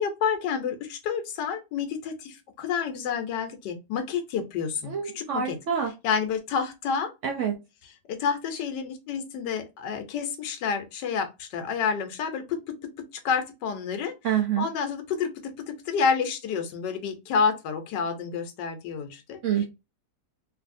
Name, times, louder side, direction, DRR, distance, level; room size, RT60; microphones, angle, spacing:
voice 1, 0.0-5.6 6.0-7.1 8.1-12.6 13.2-14.1 14.6-19.4, left 6 dB, 85° left, 7 dB, 1.4 m, -29 dB
voice 2, 4.8-5.9 7.2-7.5 14.2-14.7 19.4-19.7, right 8 dB, 65° right, 1 dB, 0.7 m, -26 dB
3.2 x 2.6 x 2.5 m, 0.25 s
omnidirectional pair, 1.8 m